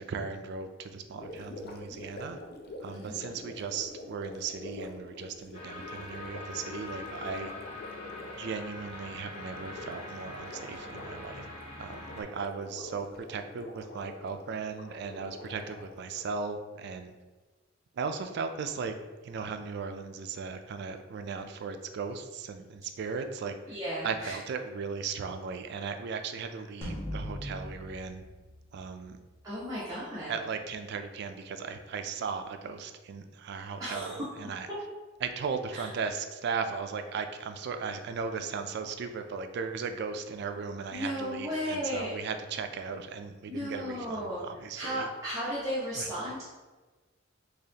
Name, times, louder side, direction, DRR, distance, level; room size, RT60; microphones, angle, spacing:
voice 1, 0.0-2.4 2.8-7.5 8.4-11.4 11.8-17.2 17.9-19.0 19.2-23.8 24.0-28.2 28.7-29.2 30.3-34.7 35.2-45.1 46.0-46.1, right 5 dB, 60° right, 7 dB, 0.3 m, -37 dB
Gurgling, 1.1-16.4, left 2 dB, 50° left, 0.4 m, -46 dB
voice 2, 2.9-3.4 23.7-24.4 29.4-30.3 33.8-34.3 35.7-35.9 40.9-42.3 43.5-44.4 44.7-46.4, equal, 20° right, -11 dB, 0.8 m, -35 dB
sound 1, 5.5-12.2, left 2 dB, 30° left, 0.8 m, -43 dB
sound 2, 26.8-29.3, equal, 15° left, 1.0 m, -40 dB
3.9 x 2.8 x 2.7 m, 1.3 s
head